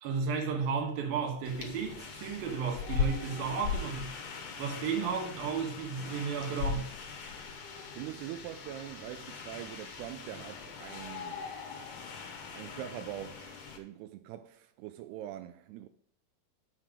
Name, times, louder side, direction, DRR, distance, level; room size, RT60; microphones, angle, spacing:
voice 1, 0.0-4.1 4.6-6.9, right 5 dB, 70° right, 3.1 m, -33 dB
sound 1, 1.4-13.8, left 6 dB, 60° left, 1.8 m, -39 dB
voice 2, 7.9-11.5 12.5-15.9, right 12 dB, 90° right, 2.6 m, -43 dB
7.9 x 5.8 x 5.0 m
omnidirectional pair, 4.6 m